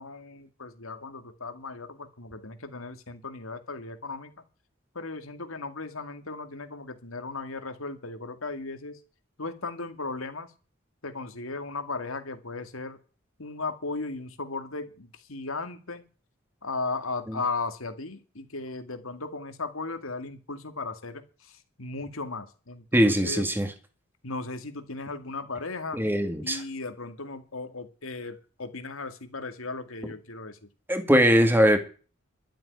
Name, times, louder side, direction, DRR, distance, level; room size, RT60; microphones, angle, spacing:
voice 1, 0.0-4.3 4.9-9.0 9.4-10.5 11.0-13.0 13.4-16.0 16.6-23.5 24.2-26.0 26.4-30.6, left 3 dB, 85° left, 8 dB, 2.2 m, -36 dB
voice 2, 22.9-23.7 25.9-26.6 30.9-31.8, equal, 10° right, 7 dB, 2.1 m, -21 dB
12.5 x 7.7 x 9.5 m, 0.36 s
head